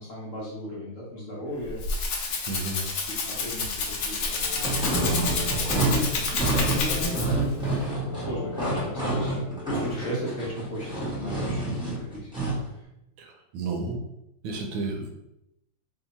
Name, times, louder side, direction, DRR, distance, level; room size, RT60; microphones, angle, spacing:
voice 1, 0.0-4.4 5.2-6.1 6.6-12.3 12.7-12.8, equal, 50° left, -6 dB, 1.0 m, -37 dB
Rattle (instrument), 1.5-7.5, left 4 dB, 70° left, 1.3 m, -29 dB
voice 2, 2.5-2.8 13.2-14.0 14.4-15.1, right 3 dB, 80° right, 3 dB, 1.4 m, -32 dB
sound 1, 4.3-11.1 11.4-11.5, left 2 dB, 90° left, 1.5 m, -38 dB
sound 2, 4.6-12.7, right 2 dB, 5° right, 0.9 m, -28 dB
3.4 x 2.8 x 4.0 m, 0.84 s
omnidirectional pair, 2.2 m